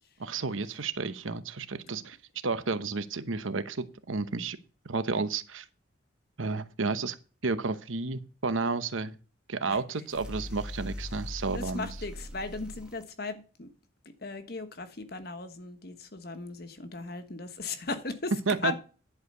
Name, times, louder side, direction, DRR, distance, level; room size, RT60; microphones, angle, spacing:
voice 1, 0.2-2.2 2.4-4.6 4.8-5.6 6.4-7.2 7.4-9.2 9.5-11.9 18.3-18.7, right 4 dB, 80° right, 1.0 m, -31 dB
sound 1, 10.1-13.0, left 1 dB, 5° right, 1.2 m, -40 dB
voice 2, 11.5-13.7 14.2-18.7, left 3 dB, 50° left, 1.2 m, -37 dB
11.0 x 4.8 x 6.6 m
head